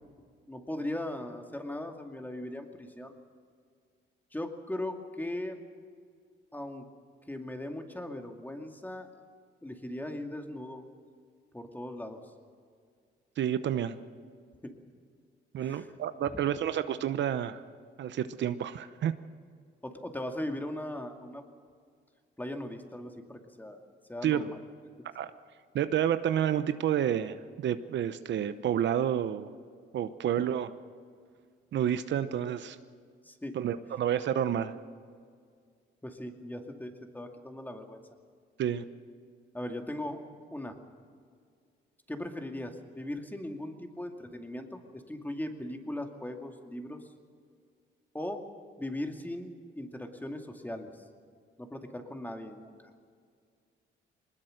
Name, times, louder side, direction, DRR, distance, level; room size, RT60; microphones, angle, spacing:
voice 1, 0.5-3.2 4.3-5.6 6.5-6.9 7.3-9.1 9.6-10.8 11.5-12.2 14.6-14.7 15.6-15.9 16.3-16.4 19.8-21.4 22.4-23.8 24.1-24.6 33.2-33.6 36.0-38.0 39.5-40.2 40.5-40.8 42.1-47.0 48.1-48.4 48.8-50.9 51.6-52.8, left 1 dB, 10° left, 4 dB, 2.4 m, -39 dB
voice 2, 13.4-14.0 15.5-17.6 18.0-19.1 24.2-24.5 25.1-25.3 25.7-29.5 29.9-30.7 31.7-32.8 33.5-34.7 38.6-38.8, right 10 dB, 65° right, 12 dB, 0.8 m, -29 dB
22.0 x 20.0 x 6.6 m, 2.1 s
cardioid pair, 90°, 20 cm